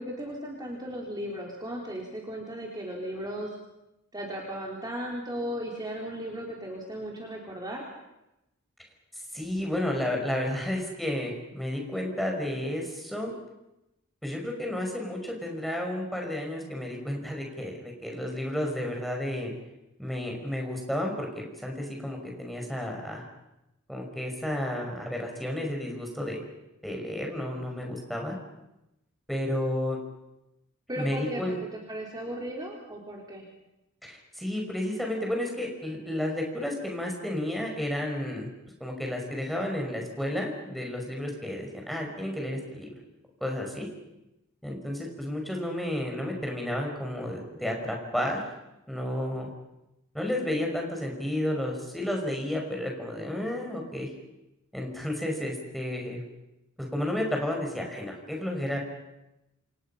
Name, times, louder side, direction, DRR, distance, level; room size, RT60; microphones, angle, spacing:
voice 1, 0.0-3.5 4.1-7.8 30.9-31.6 31.9-33.4, equal, 20° right, -2 dB, 3.9 m, -36 dB
voice 2, 9.3-13.3 14.2-19.5 20.0-23.2 23.9-26.4 26.8-28.4 29.3-30.0 31.0-31.6 34.0-38.5 38.8-42.9 43.4-43.9 44.6-48.4 48.9-49.5 50.1-54.1 54.7-56.2 56.8-58.8, left 1 dB, ahead, 0 dB, 5.6 m, -32 dB
28.5 x 27.5 x 5.8 m, 0.92 s
head